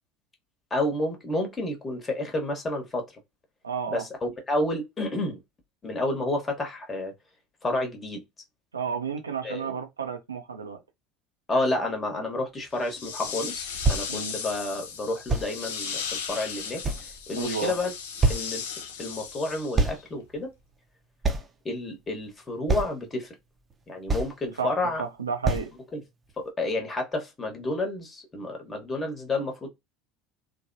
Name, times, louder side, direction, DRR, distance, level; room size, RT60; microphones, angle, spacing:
voice 1, 0.7-3.1 3.9-5.4 5.8-7.1 7.6-8.2 9.4-9.7 11.5-16.0 16.3-17.9 18.3-18.6 19.0-20.5 21.6-23.3 23.9-25.0 25.9-26.0 26.4-29.7, left 2 dB, 25° left, 1.2 m, -30 dB
voice 2, 3.6-4.0 8.7-10.8 14.1-14.3 17.3-17.7 24.6-24.7 25.0-25.7, right 6 dB, 85° right, 0.5 m, -31 dB
sound 1, 12.8-20.0, left 7 dB, 75° left, 0.5 m, -36 dB
sound 2, 13.3-13.4 13.8-14.1 15.3-15.5 16.3-16.4 16.8-17.5 17.9-18.0 18.2-18.5 19.8-20.0 20.4-20.5 21.2-21.5 22.1-22.2 22.7-23.0 23.7-23.8 24.1-24.5 24.9-25.0 25.5-25.7 26.3-26.4, right 3 dB, 25° right, 0.6 m, -25 dB
3.2 x 2.1 x 2.6 m
figure-of-eight pair, 70°, 0 cm